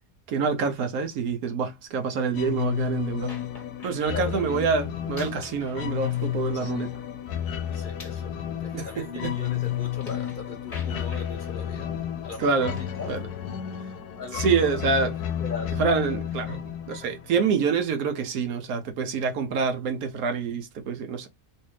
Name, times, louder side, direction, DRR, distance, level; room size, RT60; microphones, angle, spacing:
voice 1, 0.3-3.3 3.8-6.9 8.7-9.3 12.4-12.8 13.1-13.2 14.3-15.1 15.8-16.6 16.9-21.3, right 5 dB, 75° right, 1.1 m, -26 dB
sound 1, 2.3-17.8, left 10 dB, 85° left, 1.2 m, -32 dB
sound 2, 3.3-4.3 5.0-7.0 7.4-10.4 10.7-11.6 12.7-13.2, left 2 dB, 25° left, 1.1 m, -48 dB
voice 2, 4.1-4.7 6.5-6.9 7.7-11.9 12.2-13.1 14.1-15.0 15.4-15.8 17.4-17.5, left 4 dB, 55° left, 0.5 m, -39 dB
3.2 x 2.5 x 3.1 m
omnidirectional pair, 1.6 m